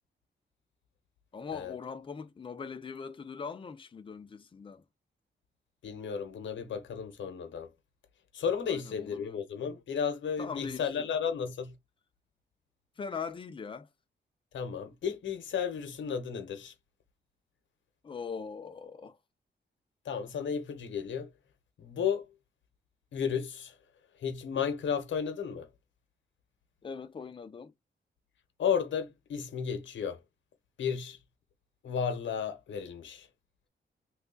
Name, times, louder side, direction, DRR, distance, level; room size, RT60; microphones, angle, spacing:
voice 1, 1.3-4.8 8.7-9.4 10.4-11.1 13.0-13.9 18.0-19.2 26.8-27.7, left 5 dB, 25° left, 0.5 m, -41 dB
voice 2, 5.8-7.7 8.3-11.7 14.5-16.7 20.0-21.3 21.8-22.3 23.1-23.7 24.2-25.7 28.6-30.2 30.8-31.2 31.8-33.3, left 7 dB, 90° left, 0.9 m, -33 dB
3.1 x 2.3 x 3.8 m
wide cardioid pair, 150°, 19 cm